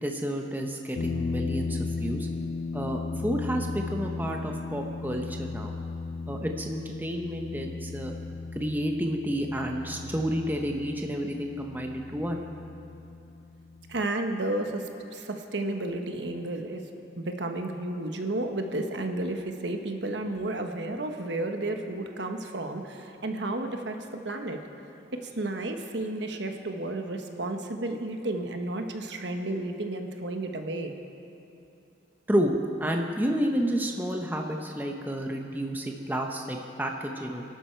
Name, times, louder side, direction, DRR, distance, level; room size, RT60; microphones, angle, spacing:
voice 1, 0.0-2.3 2.7-5.7 6.3-8.1 8.5-12.4 32.3-37.4, equal, 10° right, 2 dB, 0.9 m, -30 dB
sound 1, 1.0-14.1, left 4 dB, 60° left, 0.4 m, -36 dB
voice 2, 13.9-16.8 17.2-24.6 25.1-30.9, right 2 dB, 75° right, 5 dB, 1.1 m, -32 dB
24.0 x 11.5 x 4.5 m, 2.8 s
head